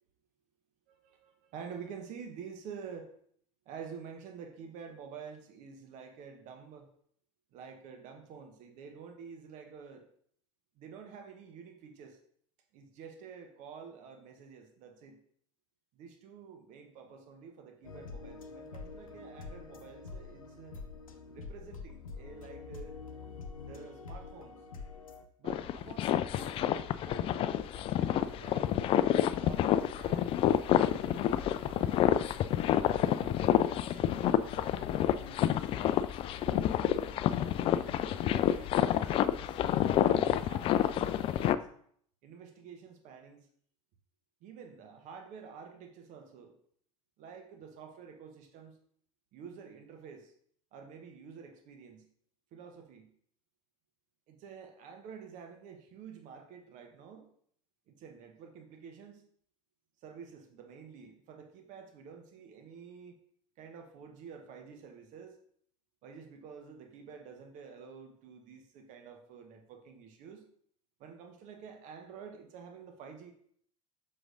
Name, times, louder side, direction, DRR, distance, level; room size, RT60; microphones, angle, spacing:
voice 1, 0.9-3.1 3.7-6.9 7.5-10.1 10.8-12.2 12.7-15.2 15.9-20.8 21.3-23.0 23.6-24.6 25.4-28.9 29.4-30.3 30.7-32.4 33.1-35.7 36.5-41.6 42.2-43.5 44.4-46.5 47.2-48.8 49.3-50.3 50.7-52.1 52.5-53.1 54.3-57.3 57.9-59.2 60.0-63.2 63.6-65.4 66.0-70.5 71.0-73.3, right 6 dB, 45° right, 5 dB, 1.1 m, -49 dB
sound 1, 17.8-25.2, left 4 dB, 75° left, 0.8 m, -46 dB
sound 2, 25.4-41.6, left 11 dB, 30° left, 0.3 m, -28 dB
7.8 x 6.1 x 2.6 m, 0.63 s
figure-of-eight pair, 75°, 17 cm